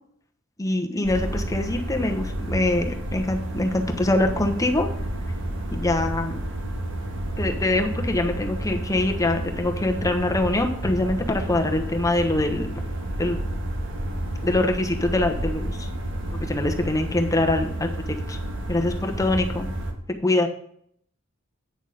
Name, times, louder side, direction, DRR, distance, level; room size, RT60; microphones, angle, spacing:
voice 1, 0.6-4.9 5.7-6.4 7.4-12.7 13.2-13.4 14.4-15.9 16.3-18.4 18.7-19.7 20.2-20.5, left 2 dB, 15° left, 4 dB, 1.1 m, -24 dB
sound 1, 1.0-19.9, right 1 dB, 60° right, 1.5 m, -30 dB
9.3 x 6.4 x 4.9 m, 0.66 s
head